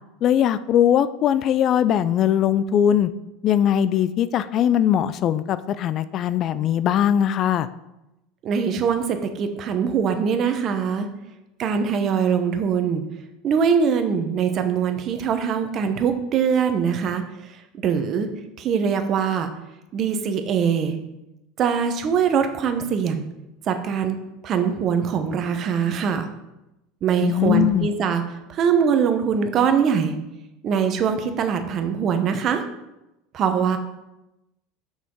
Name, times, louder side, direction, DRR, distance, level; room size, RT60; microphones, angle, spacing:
voice 1, 0.2-3.1 3.4-7.7 27.2-27.9, left 10 dB, 45° left, 14 dB, 0.4 m, -20 dB
voice 2, 8.4-11.1 11.6-13.0 13.4-17.5 17.8-18.3 18.6-19.5 19.9-21.0 21.6-23.3 23.7-24.2 24.4-26.2 27.0-28.2 28.5-30.2 30.6-32.6 33.3-33.8, right 7 dB, 45° right, 7 dB, 1.0 m, -22 dB
6.1 x 5.7 x 4.6 m, 0.93 s
hypercardioid pair, 90°, 0 cm